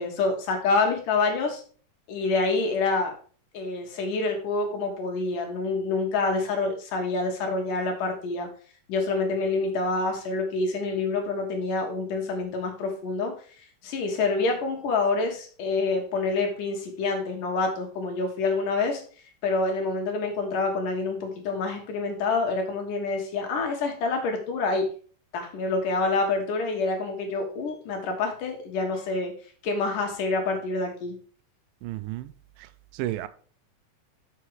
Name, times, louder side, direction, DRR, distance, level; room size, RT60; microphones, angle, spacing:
voice 1, 0.0-1.6 2.1-3.2 3.5-8.5 8.9-13.3 13.8-19.0 19.4-24.9 25.3-29.3 29.6-31.2, left 3 dB, 75° left, 3 dB, 3.2 m, -27 dB
voice 2, 31.8-32.3 32.6-33.3, right 14 dB, 90° right, 13 dB, 2.3 m, -33 dB
6.5 x 6.4 x 4.7 m, 0.42 s
omnidirectional pair, 3.8 m